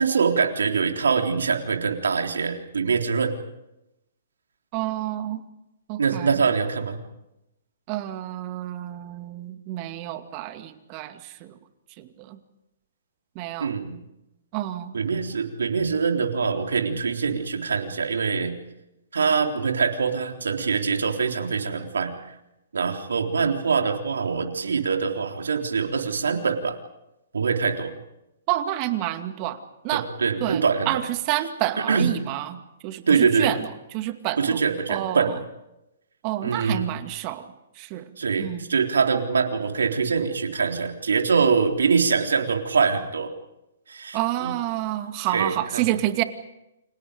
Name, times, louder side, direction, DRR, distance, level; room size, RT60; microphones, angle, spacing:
voice 1, 0.0-3.3 6.0-7.0 13.6-14.0 14.9-18.5 19.1-22.1 22.7-26.8 27.3-27.9 29.9-30.9 31.8-32.1 33.1-33.5 34.4-35.3 36.4-36.9 38.2-43.3 43.9-44.5 45.3-45.8, right 5 dB, 80° right, 3 dB, 3.8 m, -24 dB
voice 2, 4.7-5.4 5.9-6.4 7.9-11.5 12.0-12.4 13.4-13.7 14.5-14.9 28.5-29.6 29.8-30.0 30.4-32.6 32.8-33.7 33.9-34.6 34.9-35.3 36.2-37.4 37.8-38.1 38.4-38.7 44.1-46.2, right 14 dB, 35° right, 8 dB, 2.3 m, -29 dB
29.5 x 26.5 x 5.2 m, 0.91 s
hypercardioid pair, 130°, 0 cm